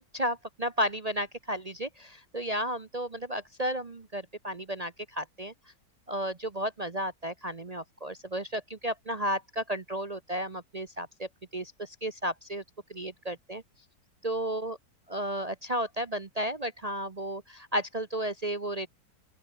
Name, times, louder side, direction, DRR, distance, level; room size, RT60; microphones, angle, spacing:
voice 1, 0.0-5.5 6.1-12.6 12.9-13.6 14.2-14.8 15.1-18.9, equal, 35° right, 0.7 m, -33 dB
open air
omnidirectional pair, 1.9 m